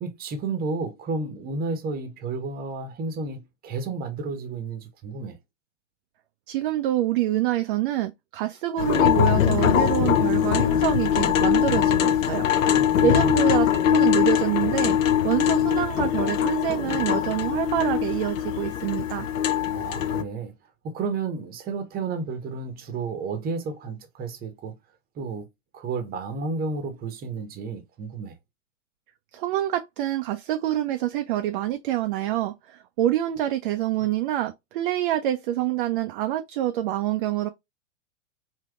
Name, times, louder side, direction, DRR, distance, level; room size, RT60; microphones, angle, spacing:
voice 1, 0.0-5.4 12.6-13.4 19.7-20.5 20.8-24.7 25.2-25.5 25.7-28.3, right 4 dB, 25° right, 0.8 m, -32 dB
voice 2, 6.5-12.5 13.0-15.0 15.2-19.3 29.3-37.5, right 13 dB, 45° right, 0.4 m, -26 dB
sound 1, 8.8-20.2, left 10 dB, 90° left, 0.5 m, -22 dB
3.4 x 2.7 x 2.3 m
hypercardioid pair, 105°, 38 cm